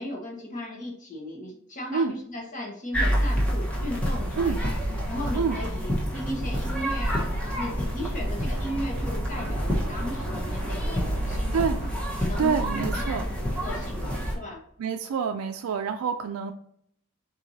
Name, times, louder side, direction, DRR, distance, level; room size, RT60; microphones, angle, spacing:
voice 1, 0.0-4.8 5.1-11.9 12.2-13.3 13.6-14.6, left 1 dB, 35° left, 0 dB, 1.2 m, -36 dB
sound 1, 2.9-14.4, equal, 5° left, 1.0 m, -28 dB
voice 2, 12.4-13.2 14.8-16.5, right 6 dB, 80° right, 6 dB, 0.3 m, -27 dB
4.6 x 4.2 x 2.7 m, 0.69 s
head